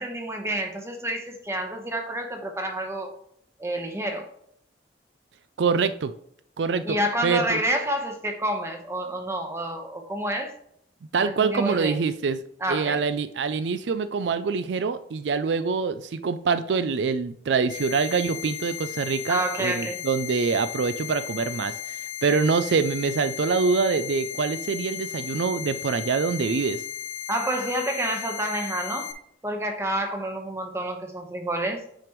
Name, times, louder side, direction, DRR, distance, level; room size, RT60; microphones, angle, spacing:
voice 1, 0.0-3.2 3.6-4.3 6.8-10.5 11.2-12.0 12.6-13.0 19.3-20.0 27.3-29.1 29.4-31.8, right 1 dB, 15° right, 3 dB, 1.0 m, -29 dB
voice 2, 5.6-6.1 6.6-7.0 7.2-7.6 11.1-12.4 12.7-26.8, right 5 dB, 75° right, 12 dB, 0.4 m, -25 dB
sound 1, 17.7-29.1, left 10 dB, 45° left, 1.3 m, -35 dB
9.0 x 5.1 x 3.1 m, 0.67 s
head